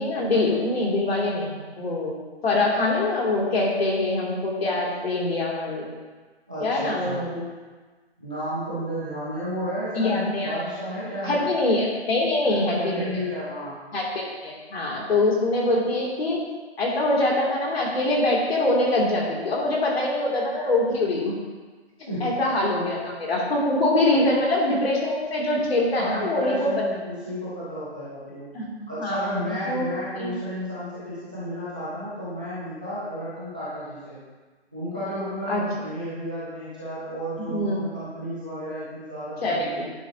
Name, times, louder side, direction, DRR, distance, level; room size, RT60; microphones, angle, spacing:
voice 1, 0.0-2.1 2.4-5.9 6.6-7.4 9.9-10.7 11.2-13.1 13.9-16.4 16.8-21.3 22.2-26.8 28.5-29.4 29.6-29.8 30.1-30.4 35.5-35.6 37.5-37.8 39.4-39.8, left 2 dB, 65° left, -3 dB, 2.7 m, -24 dB
voice 2, 6.5-7.3 8.2-11.5 12.5-13.8 22.1-22.4 24.1-24.2 26.0-28.5 28.9-34.2 34.7-39.8, equal, 10° right, -11 dB, 0.4 m, -32 dB
9.7 x 7.4 x 2.8 m, 1.4 s
hypercardioid pair, 160°, 33 cm